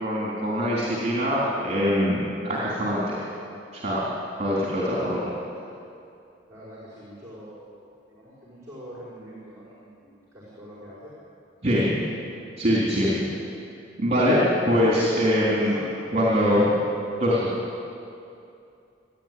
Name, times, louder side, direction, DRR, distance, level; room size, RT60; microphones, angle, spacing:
voice 1, 0.0-3.2 3.7-4.1 4.4-5.3 11.6-12.0 12.6-13.3 14.0-15.8 16.1-16.8 17.2-17.6, equal, 35° right, -5 dB, 3.7 m, -23 dB
voice 2, 6.5-11.1 13.3-13.4 15.4-15.9, equal, 15° right, -7 dB, 5.1 m, -44 dB
26.0 x 11.5 x 9.3 m, 2.6 s
head